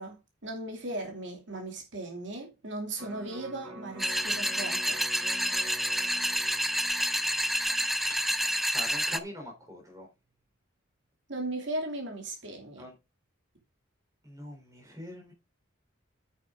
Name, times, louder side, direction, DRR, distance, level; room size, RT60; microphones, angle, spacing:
voice 1, 0.0-5.1 11.3-12.9, right 2 dB, 60° right, 2.7 m, -37 dB
Electric guitar, 3.0-9.2 9.6-9.7, right 1 dB, 80° right, 4.7 m, -48 dB
sound 1, 4.0-9.2, equal, ahead, 0.4 m, -29 dB
voice 2, 8.7-10.1 12.8-12.9 14.2-15.3, left 1 dB, 15° right, 3.9 m, -43 dB
8.9 x 7.4 x 3.7 m
head